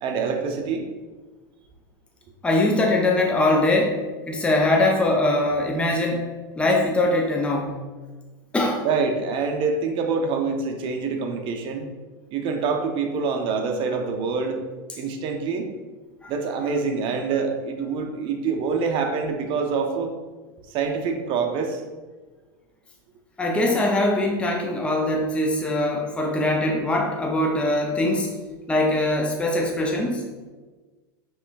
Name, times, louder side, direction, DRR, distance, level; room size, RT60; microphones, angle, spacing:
voice 1, 0.0-0.9 8.8-11.8 12.3-14.6 14.9-15.7 16.3-20.1 20.7-21.8, right 5 dB, 45° right, 4 dB, 0.6 m, -25 dB
voice 2, 2.4-7.8 8.5-8.9 16.2-16.3 23.4-28.3 28.7-30.3, left 2 dB, 10° left, 0 dB, 0.5 m, -22 dB
5.3 x 3.1 x 2.3 m, 1.3 s
hypercardioid pair, 100°, 12 cm